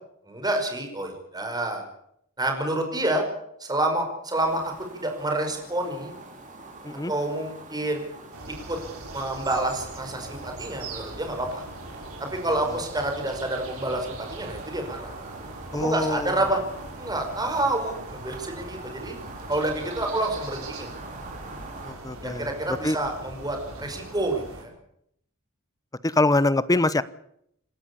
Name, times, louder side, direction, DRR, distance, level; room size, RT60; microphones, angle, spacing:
voice 1, 0.3-1.8 2.4-3.2 3.6-6.1 7.1-8.1 8.7-8.8 9.1-11.6 12.2-15.2 15.7-16.6 17.0-19.2 19.5-20.9 22.2-24.7, right 1 dB, 20° right, 4 dB, 5.3 m, -28 dB
sound 1, 4.4-21.9, right 3 dB, 40° right, 4.6 m, -44 dB
sound 2, 8.3-24.6, right 2 dB, 80° right, 5.9 m, -41 dB
voice 2, 15.7-16.4 21.8-23.0 26.0-27.0, left 2 dB, 15° left, 17 dB, 0.8 m, -24 dB
27.5 x 13.0 x 8.5 m, 0.71 s
head